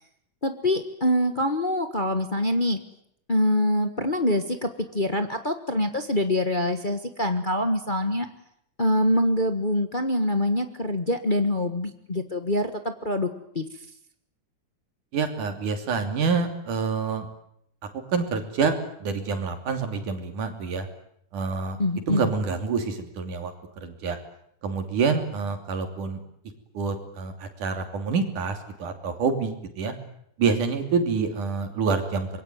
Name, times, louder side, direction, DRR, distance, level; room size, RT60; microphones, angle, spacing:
voice 1, 0.4-2.8 3.3-8.3 8.8-13.3 13.5-13.6 21.8-22.3, left 1 dB, 45° left, 7 dB, 0.6 m, -25 dB
voice 2, 15.1-17.3 18.1-20.9 21.3-21.8 22.1-23.5 23.8-24.2 24.6-26.2 26.7-29.9 30.4-32.3, right 5 dB, 80° right, 6 dB, 4.5 m, -27 dB
25.5 x 22.5 x 9.4 m, 0.73 s
omnidirectional pair, 3.6 m